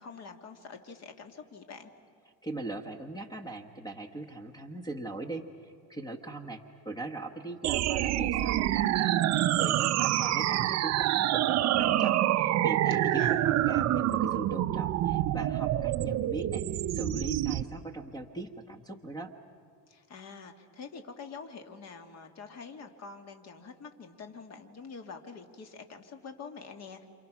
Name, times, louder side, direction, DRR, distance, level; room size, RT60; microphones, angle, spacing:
voice 1, 0.0-1.9 12.9-13.5 19.9-27.1, left 5 dB, 30° left, 6 dB, 1.9 m, -46 dB
voice 2, 2.4-16.6 16.9-19.3, right 2 dB, 10° left, 6 dB, 1.1 m, -40 dB
sound 1, 7.6-17.6, right 13 dB, 35° right, 0.6 m, -27 dB
28.5 x 28.0 x 6.0 m, 2.2 s
cardioid pair, 150°, 48 cm